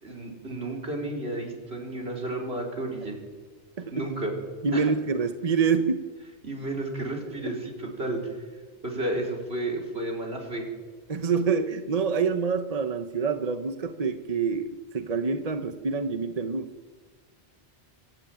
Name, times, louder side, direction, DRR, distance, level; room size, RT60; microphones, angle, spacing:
voice 1, 0.0-3.2 3.9-4.3 4.7-4.9 6.4-8.3 8.8-10.7, right 2 dB, 65° right, 0 dB, 4.4 m, -32 dB
voice 2, 4.6-6.0 7.4-7.5 11.1-16.7, right 5 dB, 40° right, 9 dB, 0.9 m, -26 dB
25.5 x 12.0 x 9.1 m, 1.4 s
omnidirectional pair, 1.1 m